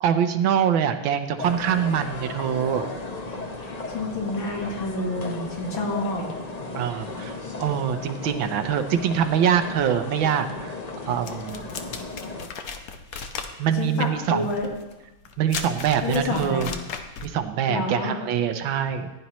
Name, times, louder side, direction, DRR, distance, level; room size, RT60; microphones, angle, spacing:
voice 1, 0.0-2.9 6.7-7.3 7.6-10.7 11.1-11.7 13.1-13.3 13.6-14.5 15.4-16.7 17.2-19.2, right 8 dB, 80° right, 8 dB, 1.5 m, -24 dB
sound 1, 1.4-12.5, left 3 dB, 40° left, 0.5 m, -35 dB
voice 2, 3.6-6.2 13.7-14.7 16.0-16.7 17.7-18.1, left 2 dB, 80° left, 0 dB, 2.4 m, -28 dB
sound 2, 11.2-17.4, left 6 dB, 60° left, 1.0 m, -36 dB
15.5 x 10.0 x 3.1 m, 1.0 s
omnidirectional pair, 2.2 m